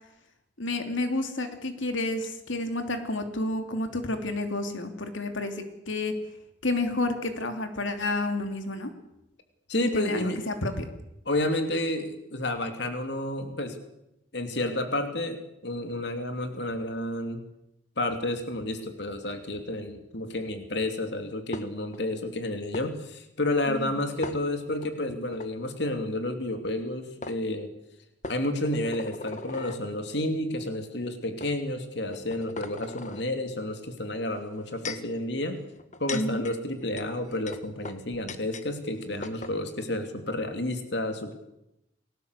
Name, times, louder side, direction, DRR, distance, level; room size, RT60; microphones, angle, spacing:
voice 1, 0.6-6.1 6.6-8.9 9.9-10.9 23.7-23.9 36.1-36.4, left 2 dB, 80° left, 6 dB, 2.9 m, -30 dB
voice 2, 9.7-10.4 11.2-13.8 14.3-17.4 18.0-27.7 28.3-35.6 36.0-41.3, left 1 dB, 60° left, 6 dB, 2.9 m, -30 dB
sound 1, 21.5-22.0 22.7-22.9 24.2-24.9 25.3-25.5 26.8-26.9 27.2-27.4 28.2-29.8 30.6-30.8 31.4-31.5 32.1-33.2 34.4-35.1 35.8-38.7 38.9-39.0 39.2-39.6, left 3 dB, 40° left, 1.5 m, -39 dB
29.0 x 19.5 x 8.2 m, 0.86 s
head